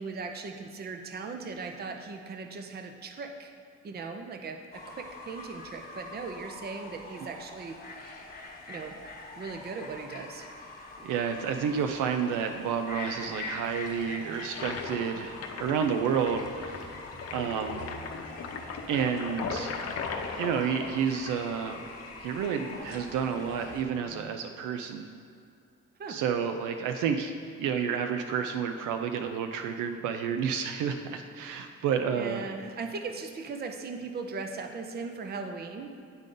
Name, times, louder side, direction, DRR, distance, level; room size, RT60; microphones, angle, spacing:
voice 1, 0.0-3.5 3.8-7.8 8.7-9.0 9.4-10.5 26.0-26.2 31.7-31.8 32.2-35.9, right 4 dB, 35° right, 5 dB, 0.5 m, -38 dB
Fowl / Bird, 4.7-23.8, left 3 dB, 30° left, 1.1 m, -45 dB
voice 2, 11.0-17.1 17.3-17.8 18.9-19.7 20.4-21.8 22.2-25.1 26.1-27.3 27.6-32.5, right 7 dB, 90° right, 6 dB, 0.5 m, -30 dB
sound 1, 13.0-24.3, equal, 10° left, 1.1 m, -54 dB
Toilet flush, 13.6-22.8, left 5 dB, 55° left, 0.7 m, -39 dB
10.5 x 3.8 x 3.8 m, 2.4 s
cardioid pair, 90°, 30 cm